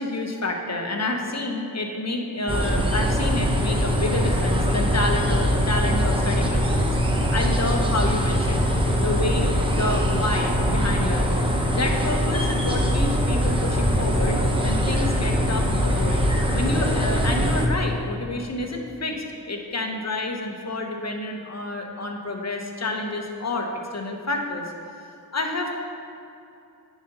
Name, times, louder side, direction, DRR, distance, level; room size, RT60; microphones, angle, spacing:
voice 1, 0.0-6.9 7.2-8.7 9.0-9.5 9.7-11.5 11.7-24.7 25.3-25.7, left 2 dB, 40° left, 2 dB, 1.1 m, -29 dB
sound 1, 2.5-17.7, equal, 15° right, 1.0 m, -22 dB
9.3 x 4.1 x 5.5 m, 2.7 s
cardioid pair, 50°, 39 cm